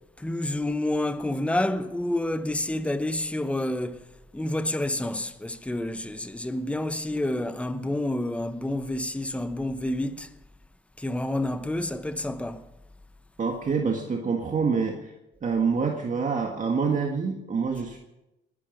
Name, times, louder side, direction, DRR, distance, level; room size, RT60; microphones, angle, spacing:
voice 1, 0.2-4.0 4.3-10.3 11.0-12.6, left 1 dB, 5° left, 0.9 m, -29 dB
voice 2, 13.4-15.1 15.4-18.0, right 5 dB, 40° right, 1.8 m, -26 dB
20.5 x 11.5 x 5.3 m
cardioid pair, 90°, 20 cm